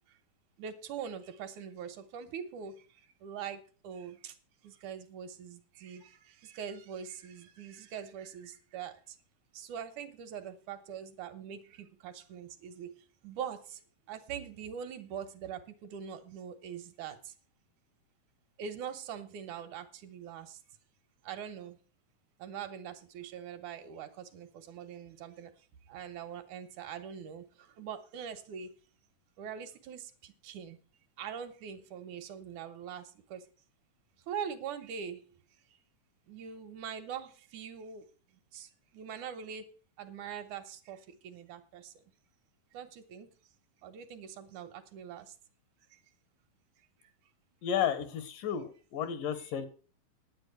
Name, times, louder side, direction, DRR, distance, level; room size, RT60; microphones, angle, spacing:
voice 1, 0.6-4.4 4.6-9.2 9.5-13.0 13.2-13.8 14.1-17.3 18.6-20.6 21.2-21.8 22.4-25.5 25.9-28.7 29.4-30.8 31.2-33.5 34.3-35.3 35.7-35.8 36.3-38.1 38.3-39.7 40.0-41.9 42.7-43.3 43.8-45.4 45.9-46.0 49.4-49.6, right 8 dB, 70° right, 8 dB, 2.3 m, -43 dB
voice 2, 47.6-49.7, left 8 dB, 80° left, 12 dB, 3.0 m, -32 dB
9.8 x 9.1 x 6.5 m, 0.38 s
omnidirectional pair, 3.8 m